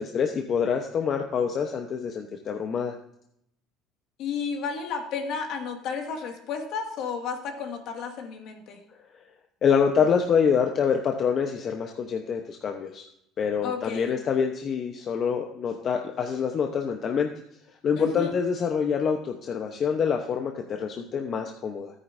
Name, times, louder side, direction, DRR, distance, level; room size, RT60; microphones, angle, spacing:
voice 1, 0.0-2.9 9.6-13.0 13.4-17.3 17.8-21.9, left 6 dB, 40° left, 4 dB, 0.9 m, -26 dB
voice 2, 4.2-8.8 13.6-14.1 18.0-18.3, left 5 dB, 65° left, 3 dB, 2.0 m, -32 dB
13.5 x 9.3 x 2.7 m, 0.74 s
cardioid pair, 115°, 0 cm